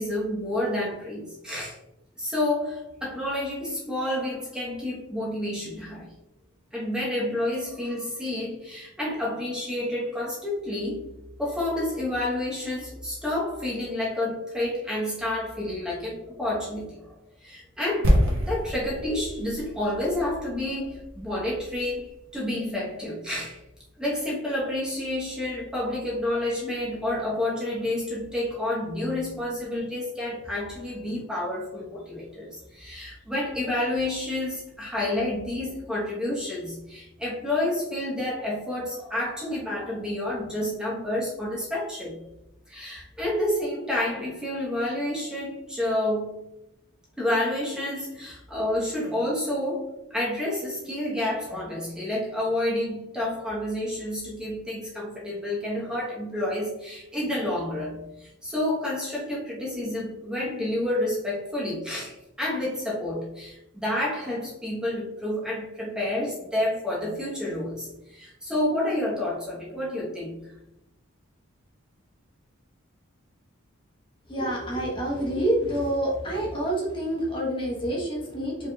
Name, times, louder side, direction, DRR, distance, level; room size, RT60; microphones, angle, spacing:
voice 1, 0.0-1.8 2.2-6.2 6.7-17.1 17.4-18.2 18.4-23.6 24.0-42.2 42.7-46.5 47.2-70.5, left 1 dB, 5° right, -5 dB, 0.9 m, -29 dB
sound 1, 18.0-22.0 22.2-22.4, equal, 70° right, 1.1 m, -27 dB
voice 2, 74.3-78.7, right 1 dB, 25° left, -3 dB, 0.9 m, -27 dB
4.9 x 3.6 x 2.2 m, 0.88 s
head